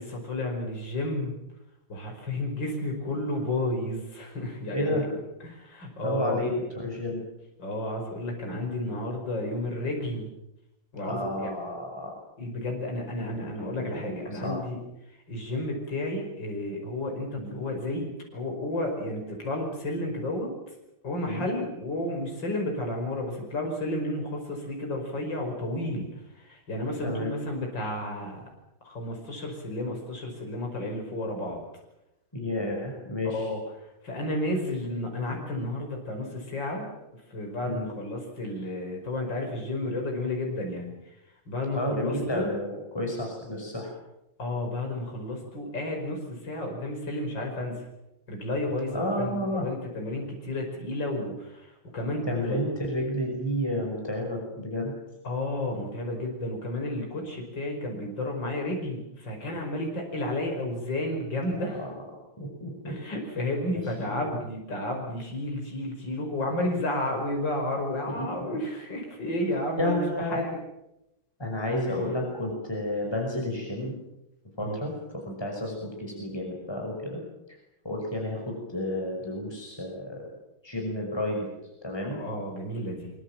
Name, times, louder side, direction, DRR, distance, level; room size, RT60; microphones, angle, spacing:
voice 1, 0.0-1.4 1.9-5.0 5.4-6.4 7.6-10.3 10.9-11.5 12.4-14.8 15.3-18.1 18.3-20.5 21.0-28.5 28.8-31.6 33.3-36.9 37.3-41.1 41.5-42.5 44.4-47.8 48.3-52.6 55.2-61.9 62.8-70.0 70.3-70.6 74.6-74.8 82.1-83.1, left 1 dB, 60° left, 1 dB, 6.1 m, -32 dB
voice 2, 4.7-5.1 6.0-7.2 11.0-12.1 13.4-14.6 17.4-17.6 21.3-21.5 27.0-27.3 32.3-33.5 37.6-37.8 41.7-43.9 48.9-49.7 52.3-54.9 61.5-61.9 62.4-62.9 64.0-64.4 68.1-68.3 69.8-70.4 71.4-73.9 74.6-77.2 77.8-80.3 80.6-81.5 81.8-82.2, left 1 dB, 10° left, 0 dB, 5.9 m, -31 dB
24.5 x 24.0 x 7.5 m, 0.88 s
omnidirectional pair, 2.2 m